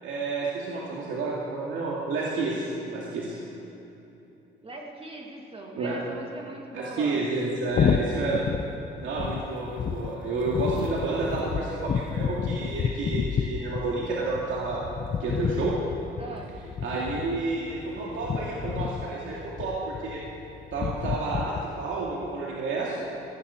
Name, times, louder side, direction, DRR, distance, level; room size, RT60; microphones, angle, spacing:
voice 1, 0.0-3.3 5.7-6.0 6.7-8.5 8.9-14.9 15.2-15.7 16.8-20.2 20.7-23.0, right 3 dB, 75° right, -5 dB, 2.3 m, -30 dB
voice 2, 4.6-7.3 16.2-16.5, right 2 dB, 30° right, -1 dB, 2.7 m, -40 dB
sound 1, 7.7-21.6, left 7 dB, 45° left, 0.7 m, -31 dB
17.0 x 7.0 x 9.7 m, 3.0 s
cardioid pair, 90°, 20 cm